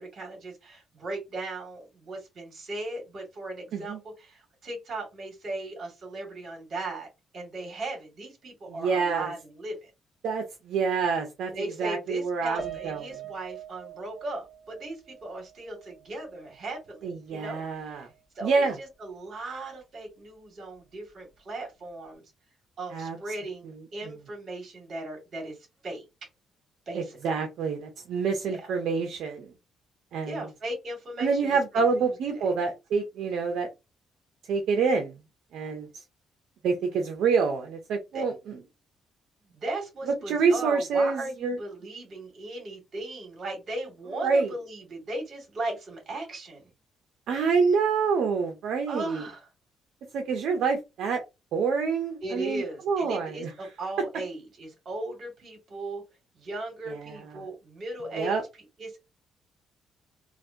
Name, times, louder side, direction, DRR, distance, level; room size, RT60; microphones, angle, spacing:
voice 1, 0.0-7.1 7.3-9.9 11.5-18.1 18.4-22.2 22.8-25.6 25.8-26.0 26.9-27.2 28.5-28.6 30.2-31.6 31.9-32.4 38.1-38.2 39.5-46.7 48.9-49.5 52.2-56.1 56.3-58.4 58.8-59.0, right 2 dB, 50° right, 2.4 m, -37 dB
voice 2, 8.7-9.3 10.2-11.5 11.8-13.2 17.0-18.1 18.4-18.8 22.9-23.2 24.0-24.1 26.9-29.5 30.1-30.5 31.2-33.7 34.5-35.2 35.5-36.0 36.6-38.6 40.3-41.6 44.2-44.5 47.3-49.2 50.1-51.2 51.5-53.5 56.9-57.4 58.2-58.4, right 5 dB, 75° right, 0.7 m, -27 dB
Piano, 12.6-17.1 17.4-17.6 18.0-18.1, right 8 dB, 20° right, 1.0 m, -43 dB
4.0 x 2.5 x 2.8 m
cardioid pair, 90°, 0 cm